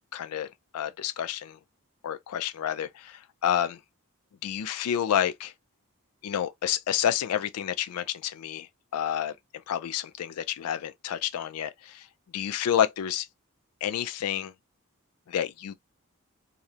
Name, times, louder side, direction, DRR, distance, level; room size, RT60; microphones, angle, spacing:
voice 1, 0.1-1.6 2.0-3.8 4.4-5.5 6.2-9.3 9.7-12.1 12.3-13.3 13.8-14.5 15.3-15.7, left 9 dB, 80° left, 0.3 m, -29 dB
2.9 x 2.0 x 2.3 m
head